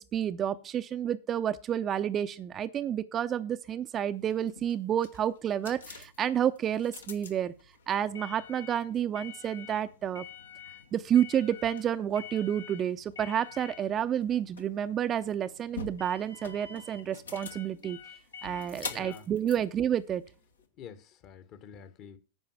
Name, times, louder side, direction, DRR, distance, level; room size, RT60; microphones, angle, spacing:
voice 1, 0.0-7.5 7.9-10.3 10.9-18.0 18.4-20.2, right 9 dB, 25° right, 0.6 m, -30 dB
sound 1, 4.2-20.6, left 6 dB, 70° left, 1.3 m, -46 dB
voice 2, 18.8-19.2 20.8-22.2, left 8 dB, 40° left, 1.3 m, -48 dB
9.8 x 5.5 x 7.1 m
figure-of-eight pair, 90°, 0 cm